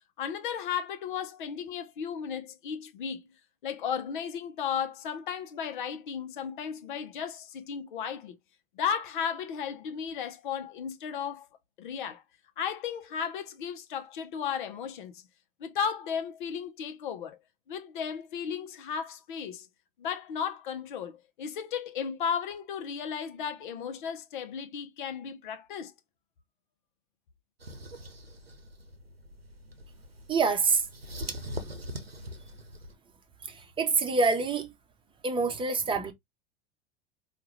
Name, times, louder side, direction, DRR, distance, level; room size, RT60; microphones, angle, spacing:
voice 1, 0.2-3.2 3.6-8.4 8.8-11.5 11.8-12.2 12.6-15.2 15.6-17.4 17.7-19.7 20.0-25.9, left 7 dB, 55° left, 0.8 m, -34 dB
sound 1, 27.6-32.9, equal, 90° right, 0.8 m, -42 dB
voice 2, 30.3-30.8 33.5-34.7 35.2-36.1, right 4 dB, 15° right, 0.9 m, -26 dB
4.7 x 2.4 x 3.1 m
figure-of-eight pair, 85°, 29 cm